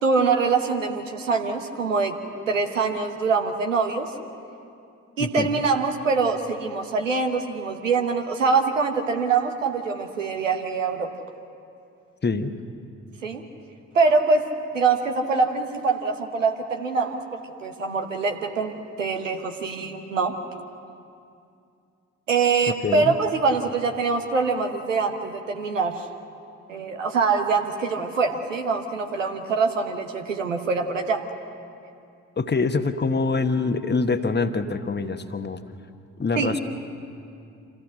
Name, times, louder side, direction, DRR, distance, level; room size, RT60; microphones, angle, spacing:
voice 1, 0.0-2.2 2.5-4.1 5.2-11.1 13.2-13.4 13.9-14.5 14.7-20.4 22.3-26.0 26.7-31.3 36.3-36.5, right 4 dB, 85° right, 5 dB, 1.0 m, -24 dB
voice 2, 5.2-5.6 12.2-12.5 22.8-23.1 32.4-35.6 36.2-36.6, left 4 dB, 25° left, 9 dB, 1.2 m, -25 dB
26.5 x 16.0 x 6.4 m, 2.5 s
figure-of-eight pair, 40°, 37 cm